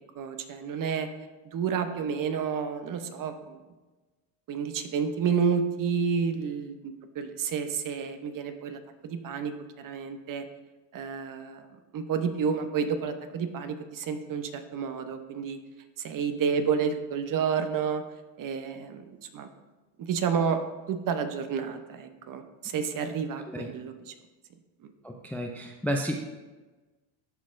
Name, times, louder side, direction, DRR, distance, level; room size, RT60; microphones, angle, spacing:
voice 1, 0.2-1.1 1.5-3.6 4.5-9.5 9.8-10.5 10.9-11.7 11.9-15.6 16.0-18.0 18.4-19.5 20.1-20.6 20.9-24.1 24.8-24.9, right 6 dB, 45° right, 8 dB, 0.8 m, -30 dB
voice 2, 25.0-26.2, equal, 5° left, 2 dB, 0.4 m, -31 dB
12.5 x 4.2 x 2.5 m, 1.2 s
supercardioid pair, 90°, 47 cm